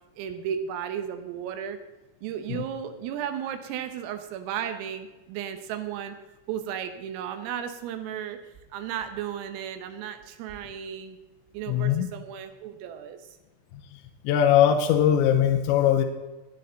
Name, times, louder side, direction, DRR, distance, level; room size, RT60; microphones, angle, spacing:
voice 1, 0.2-1.8 2.2-6.2 6.5-11.2 11.5-13.3, right 9 dB, 85° right, 8 dB, 3.8 m, -34 dB
voice 2, 11.7-12.1 14.2-16.0, left 10 dB, 80° left, 5 dB, 2.7 m, -20 dB
18.0 x 9.5 x 4.0 m, 1.1 s
omnidirectional pair, 5.9 m